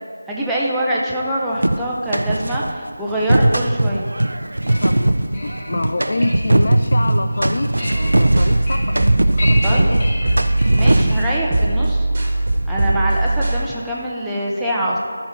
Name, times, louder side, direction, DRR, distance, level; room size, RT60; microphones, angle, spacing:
voice 1, 0.3-4.1 9.6-9.9 10.7-12.1 12.7-15.0, right 1 dB, ahead, -7 dB, 0.8 m, -24 dB
sound 1, 1.6-2.7 3.1-11.4, right 1 dB, 70° right, 0.5 m, -19 dB
sound 2, 4.4-11.2, left 1 dB, 25° left, 1.7 m, -32 dB
voice 2, 4.8-10.1, left 2 dB, 55° left, 8 dB, 0.3 m, -27 dB
sound 3, 7.9-13.6, right 2 dB, 35° right, 1.4 m, -20 dB
13.5 x 5.5 x 4.5 m, 2.2 s
figure-of-eight pair, 165°, 0 cm